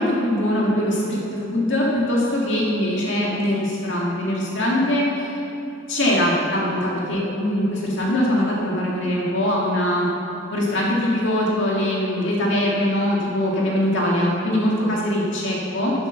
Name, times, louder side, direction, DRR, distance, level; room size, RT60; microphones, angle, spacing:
voice 1, 0.0-5.4 5.9-10.1 10.5-15.9, left 1 dB, 60° left, -4 dB, 2.2 m, -22 dB
11.0 x 9.0 x 6.9 m, 2.9 s
head